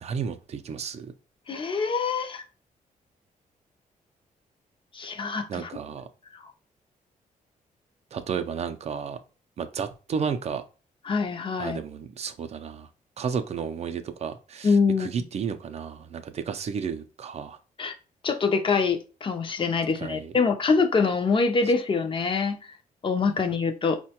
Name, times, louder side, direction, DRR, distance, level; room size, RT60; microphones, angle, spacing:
voice 1, 0.0-1.1 5.5-6.1 8.1-9.2 9.6-10.6 11.6-12.9 13.2-17.6 20.0-20.3, right 6 dB, 45° right, 0.4 m, -32 dB
voice 2, 1.5-2.4 4.9-5.7 6.4-6.5 11.1-11.8 14.6-15.1 17.8-18.0 18.2-22.6 23.0-24.0, left 4 dB, 35° left, 0.5 m, -24 dB
4.4 x 2.1 x 2.8 m
cardioid pair, 130°, 15 cm